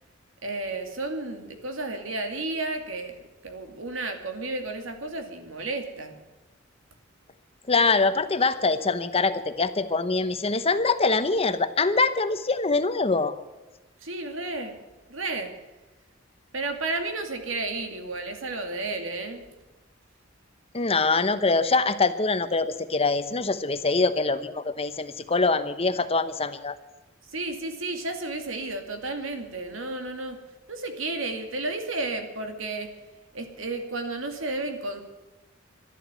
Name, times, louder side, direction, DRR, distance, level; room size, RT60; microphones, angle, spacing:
voice 1, 0.4-3.2 3.4-6.2 14.0-14.8 15.1-15.5 16.5-19.4 27.3-30.4 30.7-32.9 33.3-35.0, right 2 dB, 85° right, 5 dB, 2.4 m, -32 dB
voice 2, 7.7-13.3 20.7-26.8, left 3 dB, 30° left, 11 dB, 0.9 m, -24 dB
12.5 x 11.5 x 9.1 m, 1.1 s
head